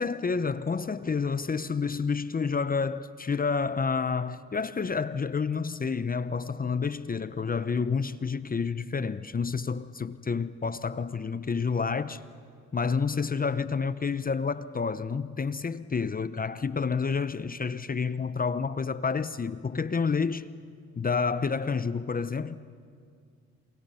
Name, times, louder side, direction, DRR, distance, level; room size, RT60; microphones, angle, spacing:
voice 1, 0.0-12.2 12.7-20.5 21.0-22.6, left 5 dB, 25° left, 0.8 m, -29 dB
30.0 x 27.0 x 5.7 m
supercardioid pair, 70°, 33 cm